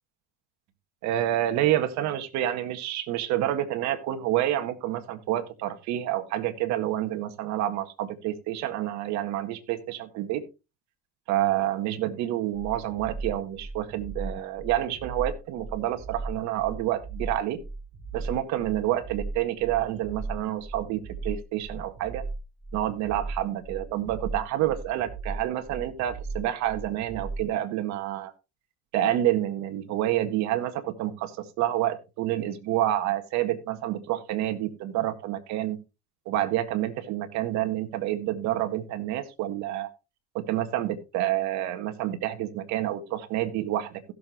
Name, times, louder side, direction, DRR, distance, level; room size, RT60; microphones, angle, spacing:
voice 1, 1.0-10.4 11.3-17.6 18.1-22.2 22.7-28.3 28.9-35.8 36.3-39.9 40.3-44.1, right 13 dB, 60° right, 9 dB, 1.8 m, -28 dB
sound 1, 12.5-27.5, right 3 dB, 5° right, 7.7 m, -37 dB
16.5 x 7.1 x 3.0 m, 0.28 s
hypercardioid pair, 80°, 31 cm